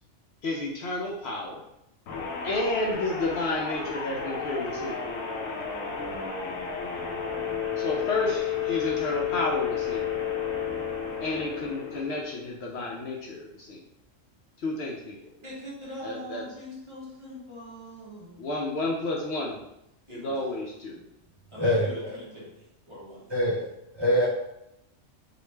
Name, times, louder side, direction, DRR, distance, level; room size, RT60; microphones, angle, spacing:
voice 1, 0.4-1.6 2.4-5.0 7.8-10.1 11.2-13.8 14.6-15.2 16.0-16.4 18.4-19.6 20.1-21.0, left 2 dB, 65° left, -2 dB, 0.7 m, -31 dB
sound 1, 2.1-12.4, left 7 dB, 90° left, 1.0 m, -32 dB
voice 2, 15.4-18.9 20.1-20.4 21.5-23.3 24.0-24.3, equal, 25° right, -7 dB, 0.8 m, -42 dB
voice 3, 21.6-21.9 23.3-23.6 23.9-24.3, left 1 dB, 45° right, -6 dB, 0.3 m, -23 dB
3.0 x 2.5 x 3.2 m, 0.83 s
omnidirectional pair, 1.3 m